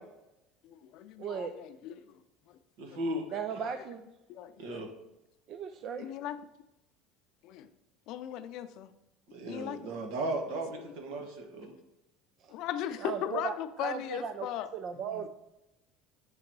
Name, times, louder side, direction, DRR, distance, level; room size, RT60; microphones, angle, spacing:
voice 1, 0.6-2.2 2.5-2.6 2.9-3.0 3.3-3.7 4.3-4.8 6.0-6.4 7.4-7.7 8.1-8.9 9.5-9.9 10.9-11.2 12.5-14.7 15.0-15.3, left 11 dB, 60° left, 11 dB, 0.5 m, -39 dB
voice 2, 1.2-1.5 3.3-4.0 5.5-6.1 12.4-12.5 13.0-15.3, right 7 dB, 45° right, 7 dB, 0.4 m, -37 dB
voice 3, 2.8-3.2 4.6-4.9 9.3-11.7, right 1 dB, 75° right, 4 dB, 1.5 m, -36 dB
8.2 x 3.9 x 4.7 m, 0.93 s
cardioid pair, 140°, 0 cm